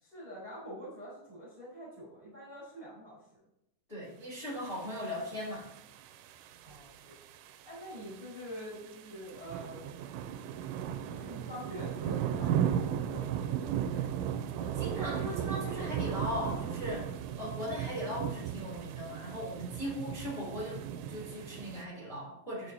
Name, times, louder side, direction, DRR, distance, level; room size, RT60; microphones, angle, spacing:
voice 1, 0.0-3.2 6.6-7.2 7.6-10.0 11.0-13.4, equal, 15° right, -7 dB, 2.7 m, -45 dB
voice 2, 3.9-5.7 13.9-14.1 14.4-17.1 17.3-20.8 21.1-22.7, left 1 dB, 15° left, -6 dB, 2.8 m, -39 dB
sound 1, 4.7-21.8, right 9 dB, 85° right, 2.9 m, -36 dB
10.5 x 6.8 x 2.7 m, 0.83 s
omnidirectional pair, 5.5 m